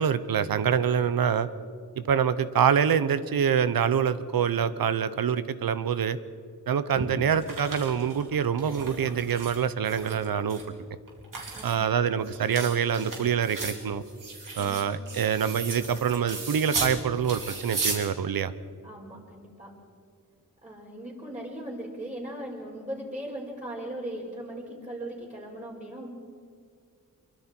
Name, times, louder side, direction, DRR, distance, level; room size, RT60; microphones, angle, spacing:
voice 1, 0.0-1.5 2.0-6.2 6.7-10.6 11.6-14.0 14.5-18.5, right 7 dB, 85° right, 14 dB, 0.9 m, -25 dB
sound 1, 6.9-9.6 9.8-10.6 11.1-17.0 17.2-18.0, right 3 dB, 65° right, 3.8 m, -35 dB
voice 2, 18.8-19.7 20.6-26.1, right 1 dB, 20° right, -4 dB, 5.0 m, -38 dB
25.5 x 23.0 x 4.5 m, 2.2 s
wide cardioid pair, 110°, 35 cm